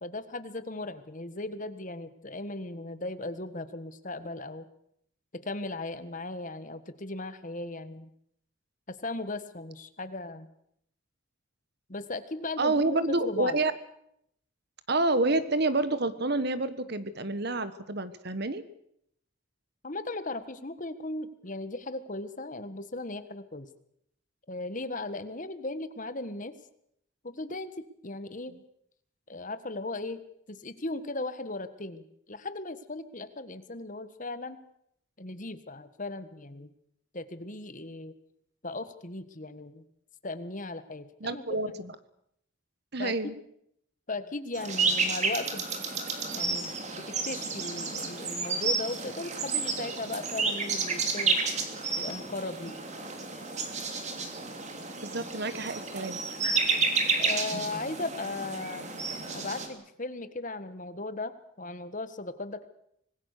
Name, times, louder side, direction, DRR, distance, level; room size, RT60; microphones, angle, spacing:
voice 1, 0.0-4.6 5.3-8.1 8.9-10.5 11.9-13.6 19.8-23.7 24.5-26.5 27.2-28.5 29.3-30.2 30.5-34.6 35.2-36.7 37.1-38.1 38.6-39.8 40.2-41.7 43.0-43.3 44.1-45.7 46.3-51.4 52.0-52.8 57.2-59.0 59.3-61.3 61.6-62.7, left 2 dB, 40° left, 11 dB, 1.5 m, -37 dB
voice 2, 12.6-13.7 14.9-18.6 41.2-41.9 42.9-43.4 55.0-56.2, right 2 dB, 55° right, 13 dB, 1.5 m, -28 dB
sound 1, 44.5-59.7, right 4 dB, 35° right, 3.1 m, -31 dB
25.5 x 20.0 x 6.7 m, 0.73 s
head